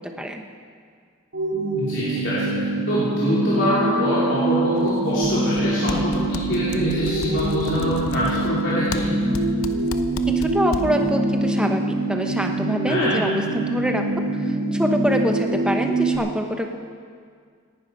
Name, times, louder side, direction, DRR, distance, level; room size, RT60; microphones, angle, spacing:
sound 1, 1.3-16.2, right 2 dB, 75° right, 2.4 m, -24 dB
voice 1, 1.8-9.1 12.9-13.2, equal, 60° left, -10 dB, 3.5 m, -25 dB
sound 2, 4.8-5.6 5.9-11.1, left 3 dB, 80° left, 0.8 m, -33 dB
voice 2, 10.3-11.8 12.1-16.8, equal, 5° right, 3 dB, 0.9 m, -25 dB
18.0 x 11.0 x 5.4 m, 2.1 s
head